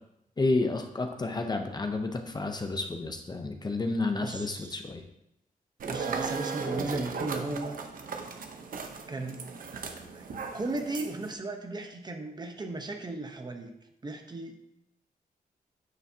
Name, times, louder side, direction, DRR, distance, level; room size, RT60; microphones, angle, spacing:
voice 1, 0.4-5.0, left 3 dB, 30° left, 5 dB, 0.7 m, -30 dB
voice 2, 4.2-4.8 5.8-7.8 9.1-9.4 10.1-10.3 10.5-13.7 14.0-14.6, right 2 dB, 30° right, 4 dB, 0.9 m, -36 dB
sound 1, 5.8-11.3, right 5 dB, 70° right, 0.9 m, -37 dB
9.3 x 6.8 x 2.8 m, 0.82 s
wide cardioid pair, 110°, 15 cm